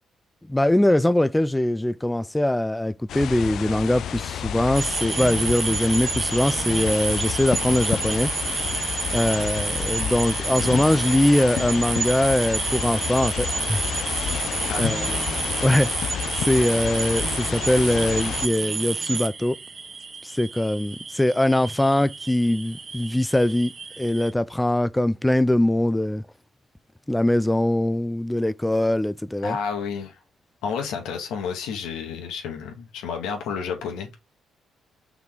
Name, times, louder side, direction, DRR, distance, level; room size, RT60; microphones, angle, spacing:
voice 1, 0.5-8.3 9.1-13.8 14.8-15.0 15.6-19.6 20.2-26.2 27.1-29.6, left 1 dB, 10° left, 0.4 m, -22 dB
sound 1, 3.1-18.5, left 9 dB, 70° left, 0.4 m, -30 dB
sound 2, 4.7-24.3, right 4 dB, 35° right, 1.0 m, -30 dB
voice 2, 14.7-15.5 29.4-30.2 30.6-34.1, left 6 dB, 90° left, 2.1 m, -31 dB
5.8 x 4.3 x 3.8 m
cardioid pair, 90°, 0 cm